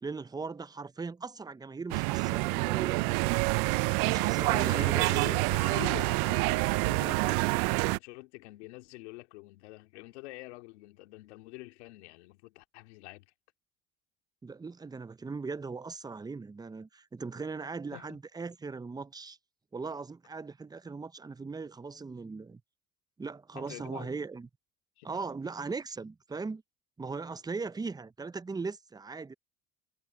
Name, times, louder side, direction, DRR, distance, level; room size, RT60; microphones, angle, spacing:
voice 1, 0.0-3.4 4.0-5.1 14.4-19.4 19.7-22.6 23.2-24.5 25.0-26.6 27.0-29.3, right 4 dB, 10° right, 0.6 m, -39 dB
sound 1, 1.9-8.0, right 29 dB, 75° right, 0.5 m, -27 dB
voice 2, 4.5-13.3 17.9-18.2 23.5-24.1 25.0-25.1, left 22 dB, 85° left, 2.3 m, -46 dB
supercardioid pair, 90°, 33 cm